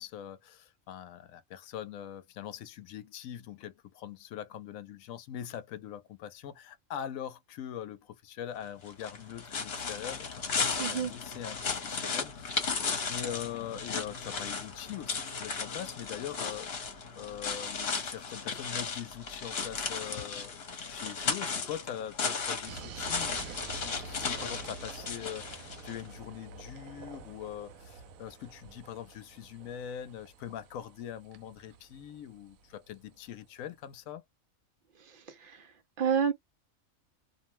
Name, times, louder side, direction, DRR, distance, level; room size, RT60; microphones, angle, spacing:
voice 1, 0.0-34.2, left 10 dB, 80° left, 1.0 m, -42 dB
sound 1, 8.9-26.1, left 5 dB, 50° left, 1.0 m, -35 dB
voice 2, 10.8-11.1 35.1-35.7 36.0-36.3, right 7 dB, 65° right, 0.5 m, -30 dB
sound 2, 22.6-33.3, right 4 dB, 85° right, 1.0 m, -48 dB
2.7 x 2.1 x 2.9 m
omnidirectional pair, 1.4 m